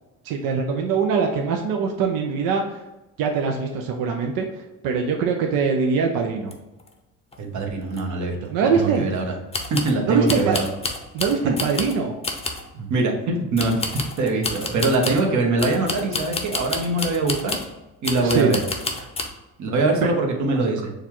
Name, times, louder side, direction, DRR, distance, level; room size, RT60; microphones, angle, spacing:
voice 1, 0.2-2.8 3.2-6.6 8.5-9.1 10.1-10.6 11.1-12.2 18.2-18.5 20.0-20.1, right 5 dB, 75° right, 2 dB, 0.6 m, -23 dB
sound 1, 6.5-6.6 6.8-6.9 7.3-7.4 7.9-8.0 9.5-10.0 10.3-12.0 12.2-12.7 13.6-15.3 15.6-17.7 18.0-19.3, left 3 dB, 15° left, 0.6 m, -29 dB
voice 2, 7.4-8.4 8.6-9.3 9.7-10.7 12.7-13.9 14.2-17.6 18.0-18.6 19.6-20.9, right 2 dB, 55° right, 1 dB, 1.1 m, -23 dB
6.5 x 2.4 x 3.0 m, 1.0 s
cardioid pair, 100°, 35 cm